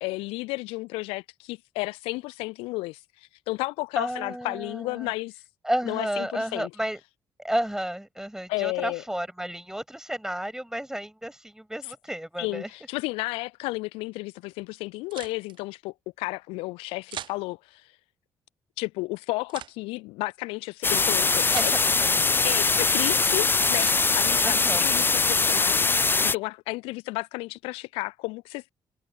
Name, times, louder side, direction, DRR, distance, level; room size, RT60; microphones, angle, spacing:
voice 1, 0.0-5.4 5.9-6.7 8.5-9.0 12.4-17.9 18.8-21.7 22.4-28.7, left 23 dB, 65° left, 0.4 m, -33 dB
voice 2, 4.0-5.1 5.6-7.0 7.4-12.7 21.5-22.4 24.4-24.8, right 1 dB, 5° right, 7.0 m, -32 dB
sound 1, 15.1-15.6 17.1-17.4 19.5-19.8 21.5-21.8 23.7-24.1, right 10 dB, 50° right, 0.8 m, -39 dB
sound 2, 20.8-26.3, left 4 dB, 20° left, 0.6 m, -22 dB
figure-of-eight pair, 45°, 10 cm